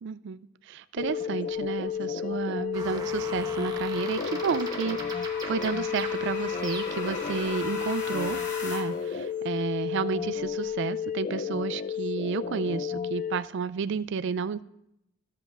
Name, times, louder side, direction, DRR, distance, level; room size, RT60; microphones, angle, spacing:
voice 1, 0.0-0.4 0.7-14.6, right 6 dB, 65° right, 16 dB, 0.3 m, -31 dB
sound 1, 1.0-13.4, left 7 dB, 40° left, 0.4 m, -32 dB
sound 2, 2.7-7.2, right 3 dB, 20° right, 0.9 m, -41 dB
sound 3, 4.0-9.1, left 3 dB, 65° left, 2.2 m, -39 dB
13.5 x 7.7 x 2.4 m, 0.81 s
head